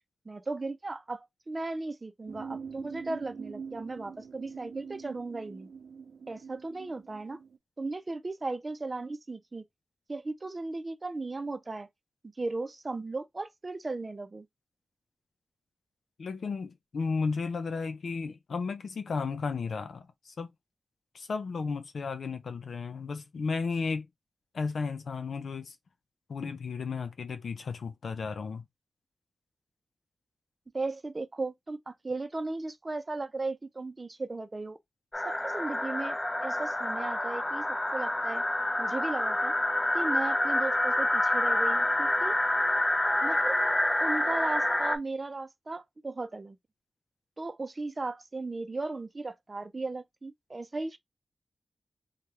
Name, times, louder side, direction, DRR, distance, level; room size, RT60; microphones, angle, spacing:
voice 1, 0.3-5.7 6.3-7.4 7.8-9.6 10.1-11.9 12.4-14.5 30.7-34.8 35.2-38.4 38.8-39.5 39.9-42.4 43.2-43.6 44.0-46.6 47.4-51.0, right 3 dB, 30° right, 0.6 m, -36 dB
sound 1, 2.3-7.6, right 6 dB, 90° right, 0.6 m, -44 dB
voice 2, 16.2-20.5 21.1-24.1 24.5-25.7 26.3-28.6, left 4 dB, 75° left, 0.6 m, -34 dB
sound 2, 35.1-45.0, left 1 dB, 20° left, 0.5 m, -28 dB
3.4 x 2.4 x 2.9 m
wide cardioid pair, 110°, 0 cm